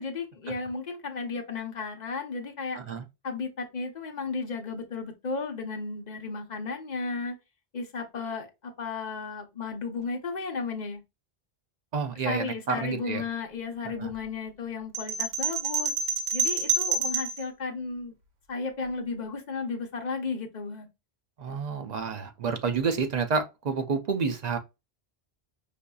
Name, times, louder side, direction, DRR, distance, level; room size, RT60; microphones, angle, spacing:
voice 1, 0.0-2.8 3.2-7.3 7.7-11.0 12.2-15.9 16.3-18.1 18.5-20.9, left 4 dB, 45° left, 0.8 m, -34 dB
voice 2, 11.9-13.2 14.0-14.1 21.4-24.6, right 5 dB, 55° right, 0.5 m, -29 dB
sound 1, 14.9-17.4, right 4 dB, 90° right, 1.0 m, -27 dB
5.0 x 2.6 x 2.3 m
omnidirectional pair, 1.1 m